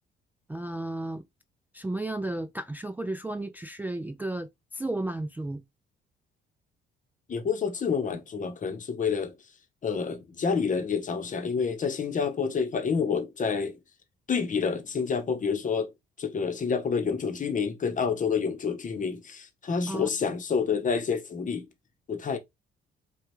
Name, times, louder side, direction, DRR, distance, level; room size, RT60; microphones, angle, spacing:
voice 1, 0.5-1.2 1.7-5.6 19.9-20.1, right 2 dB, 10° right, 0.3 m, -33 dB
voice 2, 7.3-9.3 9.8-13.8 14.3-15.9 16.2-21.7 22.1-22.4, left 6 dB, 40° left, 0.9 m, -28 dB
5.0 x 2.3 x 3.0 m
cardioid pair, 90°, 20 cm